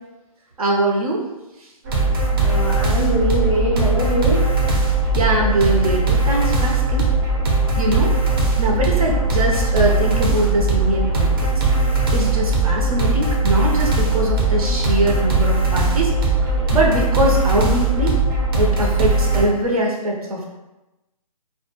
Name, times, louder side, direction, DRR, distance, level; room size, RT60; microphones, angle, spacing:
voice 1, 0.6-1.2 5.1-7.0 7.8-8.1 8.6-11.3 12.1-16.1 16.7-18.2 18.6-20.4, right 1 dB, 75° right, -1 dB, 0.7 m, -22 dB
sound 1, 1.9-19.4, right 3 dB, 40° right, 0.6 m, -19 dB
voice 2, 2.4-4.4, equal, 10° left, -8 dB, 0.5 m, -22 dB
2.2 x 2.2 x 2.9 m, 1.0 s
hypercardioid pair, 155°, 19 cm